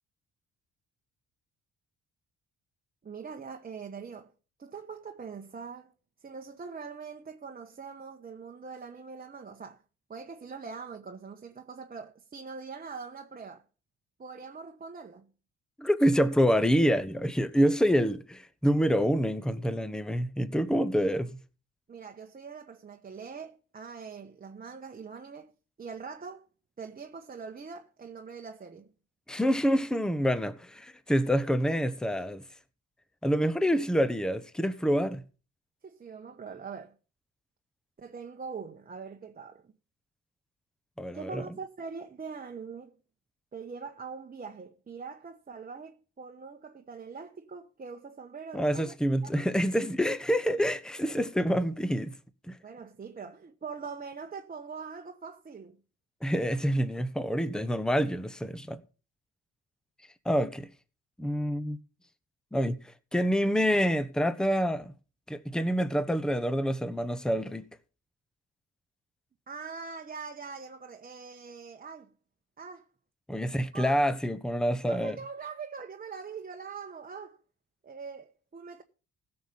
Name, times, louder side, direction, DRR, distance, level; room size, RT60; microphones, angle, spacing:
voice 1, 3.0-4.3 4.6-5.9 6.2-9.8 10.1-13.6 14.2-15.3 21.9-25.5 25.8-26.5 26.8-28.9 35.8-36.9 38.0-39.7 41.1-43.0 43.5-48.9 49.2-49.5 52.6-55.8 69.5-72.1 72.6-72.8 73.7-74.0 74.8-77.4 77.8-78.8, right 5 dB, 30° right, 1.1 m, -43 dB
voice 2, 15.8-21.4 29.3-32.4 33.2-35.2 41.0-41.4 48.5-52.1 52.5-52.6 56.2-58.8 60.2-60.7 61.2-61.8 62.5-62.8 63.1-64.9 65.3-67.7 73.3-75.2, equal, ahead, 1.0 m, -27 dB
16.0 x 6.7 x 5.5 m
cardioid pair, 90°, 30 cm